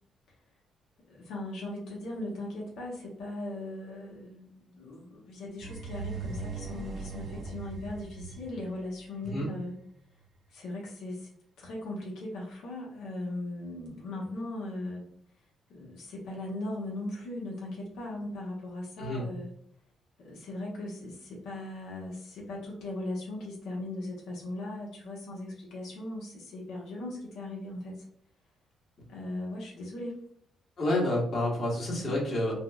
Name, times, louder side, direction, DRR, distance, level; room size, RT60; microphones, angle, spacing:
voice 1, 1.1-9.8 10.5-11.3 11.6-15.1 15.7-19.5 20.2-28.1 29.1-30.2 31.9-32.2, left 1 dB, 85° left, -3 dB, 0.9 m, -38 dB
sound 1, 5.6-9.5, right 4 dB, 50° right, 0.5 m, -40 dB
voice 2, 30.8-32.5, left 1 dB, 50° left, -3 dB, 1.3 m, -29 dB
4.3 x 2.1 x 2.3 m, 0.64 s
cardioid pair, 90°, 0 cm